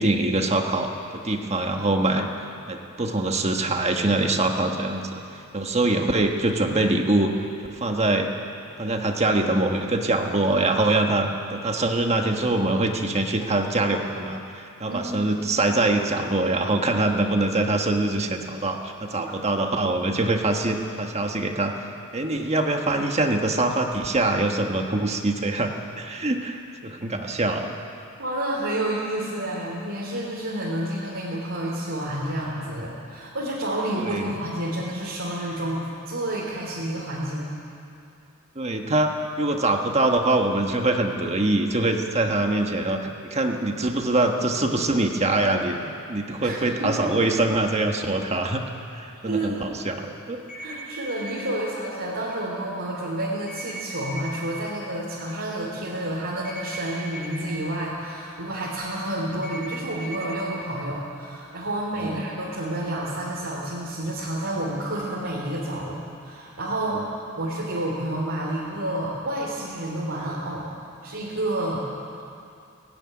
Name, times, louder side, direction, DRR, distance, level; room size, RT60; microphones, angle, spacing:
voice 1, 0.0-2.3 2.7-5.2 5.5-7.3 7.7-8.3 8.8-21.9 22.1-27.7 34.0-34.3 38.5-48.6 48.9-50.4 62.0-62.1 66.9-67.1, right 2 dB, 30° right, 3 dB, 1.4 m, -24 dB
voice 2, 14.9-15.3 19.2-19.3 28.2-37.5 46.4-46.9 49.2-50.0 50.6-71.9, right 1 dB, 60° right, -5 dB, 3.2 m, -30 dB
sound 1, 50.5-51.5 53.5-54.5 56.4-57.4 59.4-60.4, right 1 dB, 35° left, 4.3 m, -38 dB
17.5 x 16.5 x 9.8 m, 2.7 s
head